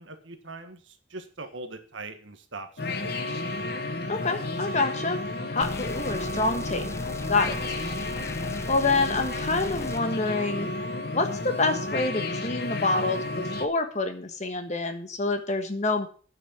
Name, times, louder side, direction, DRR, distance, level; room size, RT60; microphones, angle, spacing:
voice 1, 0.0-3.2, right 3 dB, 75° right, 7 dB, 1.5 m, -41 dB
sound 1, 2.8-13.7, left 2 dB, 50° left, 1.1 m, -32 dB
voice 2, 4.1-5.2 5.5-6.9 7.3-7.6 8.7-10.7 11.1-16.1, left 3 dB, 35° left, 7 dB, 1.3 m, -27 dB
sound 2, 5.6-10.0, left 2 dB, 15° left, 0.6 m, -39 dB
9.4 x 6.5 x 7.3 m, 0.41 s
head